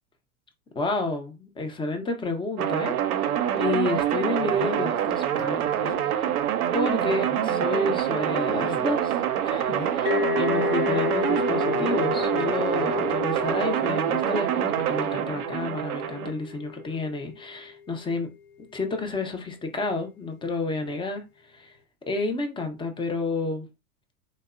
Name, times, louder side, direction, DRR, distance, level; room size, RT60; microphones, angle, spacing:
voice 1, 0.8-3.3 3.6-6.3 6.7-9.2 9.4-18.3 18.7-21.2 21.5-21.7 22.1-23.7, left 2 dB, 10° left, 0.4 m, -30 dB
sound 1, 2.6-16.3, right 10 dB, 85° right, 0.5 m, -26 dB
sound 2, 3.6-3.7 4.5-5.0 5.4-5.5 5.8-6.1 7.0-7.9 8.3-9.1 9.7-10.2 11.7-12.1 13.3-13.5 13.9-14.0, left 5 dB, 50° left, 0.7 m, -39 dB
sound 3, 10.1-17.6, left 6 dB, 80° left, 0.8 m, -31 dB
3.4 x 2.0 x 2.3 m
hypercardioid pair, 95°, 43 cm